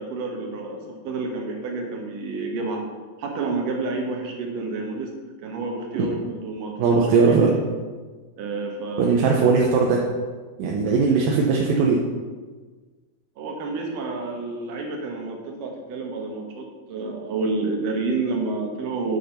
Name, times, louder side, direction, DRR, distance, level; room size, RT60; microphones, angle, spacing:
voice 1, 0.0-2.8 3.2-5.1 5.4-7.0 7.2-7.4 8.4-9.7 13.4-19.2, right 3 dB, 70° right, 1 dB, 2.8 m, -29 dB
voice 2, 6.8-7.6 9.0-10.0 10.6-12.0, right 4 dB, 85° right, -2 dB, 2.7 m, -19 dB
8.4 x 6.6 x 5.6 m, 1.4 s
omnidirectional pair, 4.0 m